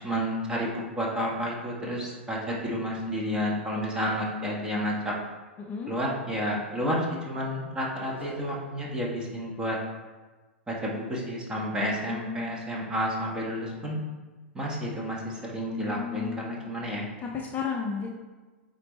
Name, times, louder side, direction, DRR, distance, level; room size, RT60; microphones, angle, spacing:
voice 1, 0.0-5.1 5.9-9.8 10.7-14.0 14.5-17.0, equal, 10° right, -3 dB, 1.6 m, -30 dB
voice 2, 5.6-5.9 12.0-13.2 15.6-16.7 17.2-18.1, left 6 dB, 25° left, 0 dB, 0.7 m, -35 dB
sound 1, 8.0-8.9, right 2 dB, 80° right, 1.2 m, -44 dB
8.3 x 4.1 x 3.3 m, 1.3 s
figure-of-eight pair, 95°, 6 cm